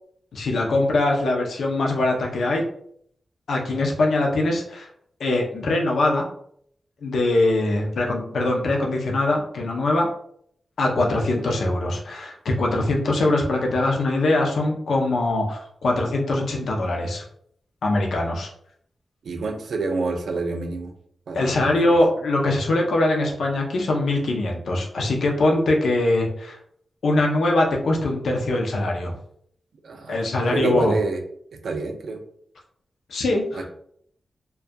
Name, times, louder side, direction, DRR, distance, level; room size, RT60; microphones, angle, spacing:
voice 1, 0.3-2.6 3.5-4.9 5.2-6.3 7.0-10.1 10.8-17.2 17.8-18.5 21.3-26.6 27.0-29.2 30.1-30.9 33.1-33.7, left 2 dB, 85° left, 0 dB, 0.5 m, -22 dB
voice 2, 19.2-20.9 21.3-22.0 29.8-30.2 30.5-31.2 31.5-32.2 33.5-33.7, right 3 dB, 80° right, 5 dB, 0.4 m, -28 dB
2.6 x 2.3 x 2.2 m, 0.67 s
wide cardioid pair, 90°, 0 cm